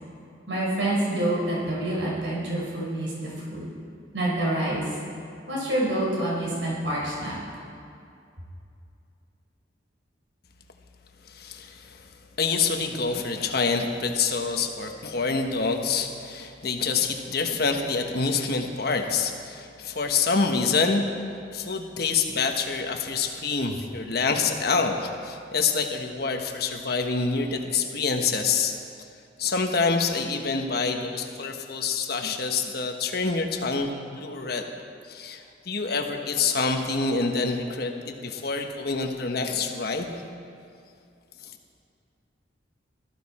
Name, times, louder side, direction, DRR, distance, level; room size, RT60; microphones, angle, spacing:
voice 1, 0.5-3.6 4.1-4.8 5.5-7.4, right 1 dB, 80° right, -5 dB, 4.3 m, -27 dB
voice 2, 11.3-12.1 12.4-21.1 21.5-28.8 29.4-34.7 35.1-40.1 41.4-41.6, left 4 dB, 55° left, 4 dB, 1.2 m, -26 dB
18.0 x 14.0 x 4.3 m, 2.5 s
head